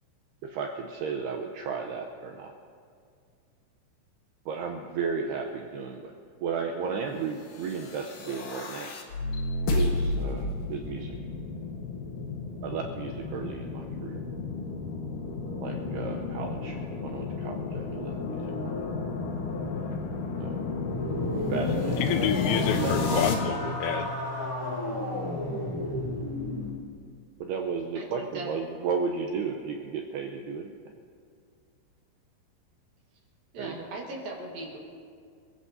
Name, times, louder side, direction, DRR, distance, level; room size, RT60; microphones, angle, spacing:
voice 1, 0.4-2.5 4.5-6.1 6.4-8.9 9.7-11.2 12.6-14.2 15.6-18.5 20.4-20.6 21.3-22.2 22.7-23.3 27.4-30.7 33.6-33.8, right 5 dB, 80° right, 2 dB, 2.4 m, -34 dB
sound 1, 7.6-23.3, left 3 dB, 65° left, 2.1 m, -32 dB
sound 2, 20.9-26.8, left 1 dB, 10° left, 1.7 m, -32 dB
voice 2, 22.0-24.1, left 9 dB, 85° left, 8 dB, 2.7 m, -28 dB
voice 3, 27.9-28.5 33.5-34.8, right 2 dB, 60° right, -1 dB, 2.9 m, -39 dB
27.0 x 16.5 x 2.7 m, 2.2 s
omnidirectional pair, 5.5 m